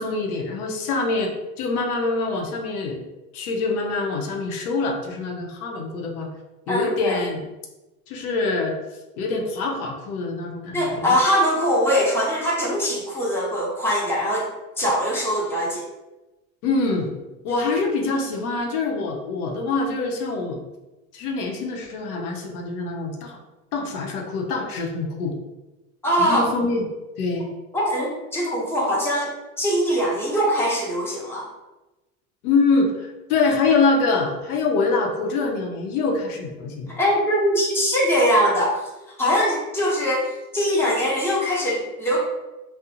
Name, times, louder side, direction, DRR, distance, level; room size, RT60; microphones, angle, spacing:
voice 1, 0.0-1.3 1.6-3.0 3.3-6.3 6.7-7.4 8.1-8.7 9.2-11.2 16.6-17.1 17.4-20.6 21.1-23.4 23.7-25.3 26.2-26.9 27.2-27.5 32.4-36.9, left 3 dB, 85° left, 0 dB, 0.6 m, -24 dB
voice 2, 6.7-7.2 10.7-14.5 14.8-15.8 26.0-26.5 27.7-29.3 29.6-31.4 37.0-38.8 39.2-42.2, equal, 5° left, -6 dB, 0.8 m, -22 dB
2.4 x 2.0 x 2.7 m, 1.1 s
hypercardioid pair, 90°, 43 cm